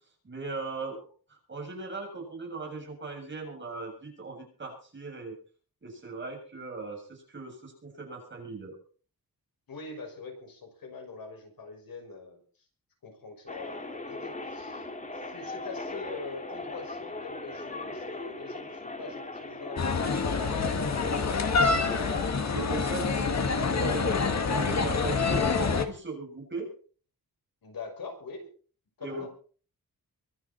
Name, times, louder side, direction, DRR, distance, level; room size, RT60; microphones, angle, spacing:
voice 1, 0.2-1.0 1.3-5.3 5.8-8.7 22.4-24.2 24.5-26.7 29.0-29.3, right 3 dB, 30° right, 1 dB, 7.4 m, -38 dB
voice 2, 9.7-12.4 13.0-14.9 15.1-21.6 27.6-28.5 29.0-29.3, left 4 dB, 75° left, 4 dB, 6.1 m, -43 dB
sound 1, 13.5-22.4, left 2 dB, 20° left, 2.0 m, -39 dB
sound 2, 19.8-25.8, left 4 dB, 50° left, 1.8 m, -26 dB
24.0 x 11.5 x 4.4 m, 0.43 s
wide cardioid pair, 175°, 35 cm